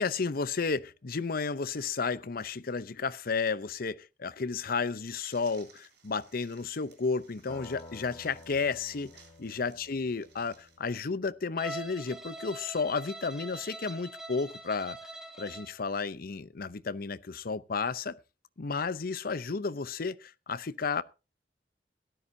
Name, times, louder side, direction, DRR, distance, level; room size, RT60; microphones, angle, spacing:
voice 1, 0.0-9.1 9.4-15.0 15.4-18.2 18.6-21.0, left 4 dB, 55° left, 0.7 m, -32 dB
sound 1, 5.2-10.8, right 6 dB, 65° right, 6.9 m, -60 dB
sound 2, 7.5-11.8, left 2 dB, 20° left, 2.4 m, -52 dB
Bowed string instrument, 11.6-15.8, right 2 dB, 5° right, 1.7 m, -43 dB
17.0 x 12.5 x 2.7 m
head